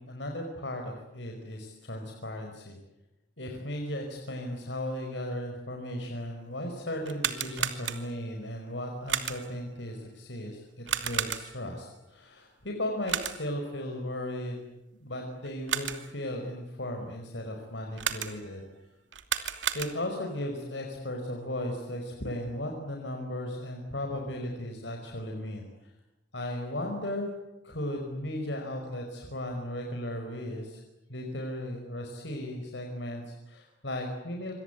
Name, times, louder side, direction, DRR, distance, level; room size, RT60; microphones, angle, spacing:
voice 1, 0.0-2.8 3.4-14.7 14.9-18.6 19.7-25.9 26.3-27.3 27.6-30.8 31.1-34.5, left 1 dB, 70° left, 3 dB, 5.1 m, -36 dB
sound 1, 7.0-8.3 9.1-9.6 10.9-11.7 13.1-13.6 15.4-16.2 18.0-18.6 19.1-20.3, right 9 dB, 90° right, 2.7 m, -33 dB
27.5 x 26.5 x 8.2 m, 0.96 s
head